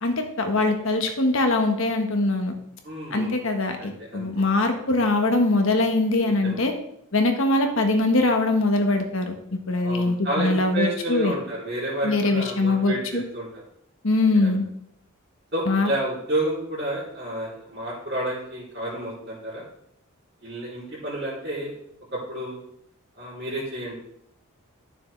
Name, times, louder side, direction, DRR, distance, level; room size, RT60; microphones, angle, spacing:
voice 1, 0.0-2.5 3.1-6.7 7.1-9.3 9.7-11.3 12.0-13.2 14.0-14.6 15.7-15.9, left 2 dB, 60° left, 4 dB, 1.4 m, -22 dB
voice 2, 2.8-3.3 3.8-4.2 6.2-6.6 9.8-13.6 14.4-14.5 15.5-19.6 20.4-21.7 22.1-22.6 23.2-23.9, right 1 dB, 45° right, -10 dB, 3.4 m, -30 dB
12.5 x 6.9 x 3.3 m, 0.74 s
head